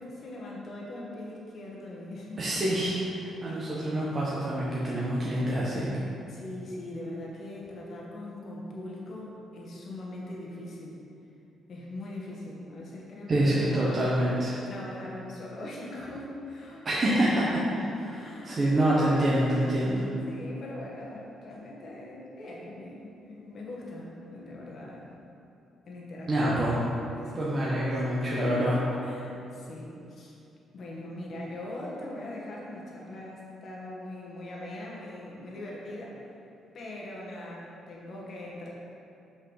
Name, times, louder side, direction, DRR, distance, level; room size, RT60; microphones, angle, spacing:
voice 1, 0.0-2.4 6.1-11.0 11.7-14.1 14.6-17.7 18.1-19.4 20.3-25.1 25.9-26.9 27.1-28.0 28.3-30.4 30.7-36.2 36.7-38.7, left 1 dB, 55° left, -4 dB, 1.9 m, -41 dB
voice 2, 2.4-5.9 13.3-14.5 16.8-17.4 18.1-18.2 18.4-20.0 26.3-26.8 27.3-28.8, right 1 dB, 35° right, -7 dB, 1.3 m, -26 dB
6.0 x 5.7 x 5.8 m, 2.7 s
cardioid pair, 90°, 0 cm